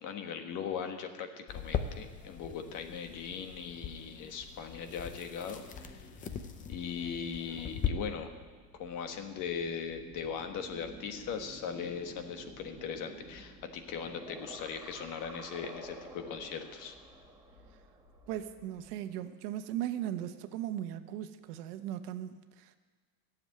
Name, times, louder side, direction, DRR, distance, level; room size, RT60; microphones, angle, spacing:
voice 1, 0.0-6.1 6.7-8.3 8.7-17.0, left 6 dB, 40° left, 6 dB, 1.4 m, -39 dB
sound 1, 1.5-7.9, left 8 dB, 20° left, 0.5 m, -40 dB
sound 2, 5.6-19.5 19.8-21.2, right 2 dB, 5° right, 1.4 m, -53 dB
sound 3, 8.0-18.9, left 3 dB, 90° left, 4.0 m, -61 dB
voice 2, 18.3-22.8, right 11 dB, 85° right, 9 dB, 1.1 m, -38 dB
14.0 x 7.3 x 9.4 m, 1.4 s
cardioid pair, 160°, 45 cm